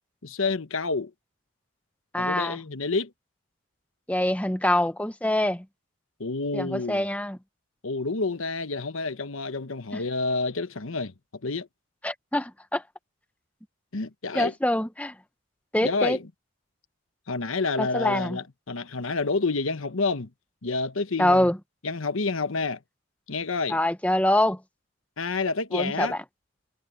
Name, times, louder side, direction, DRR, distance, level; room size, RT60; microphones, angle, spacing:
voice 1, 0.2-1.1 2.2-3.1 6.2-7.0 7.8-11.1 11.4-11.7 13.9-14.5 15.8-16.3 17.3-20.3 20.6-21.5 21.8-22.8 23.3-23.8 25.2-26.2, left 3 dB, 75° left, 1.1 m, -28 dB
voice 2, 2.1-2.6 4.1-5.6 6.5-7.4 9.9-10.0 12.0-12.8 14.3-15.1 15.7-16.2 17.8-18.4 21.2-21.6 23.7-24.6 25.7-26.2, left 1 dB, 5° left, 0.9 m, -25 dB
head